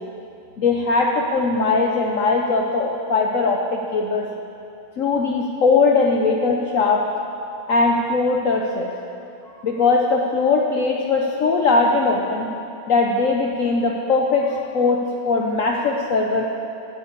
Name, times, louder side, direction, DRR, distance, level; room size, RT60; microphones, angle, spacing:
voice 1, 0.6-4.3 5.0-7.1 7.7-8.9 9.6-12.5 12.9-16.5, left 3 dB, 80° left, 0 dB, 0.7 m, -20 dB
9.5 x 7.9 x 8.1 m, 2.7 s
omnidirectional pair, 2.3 m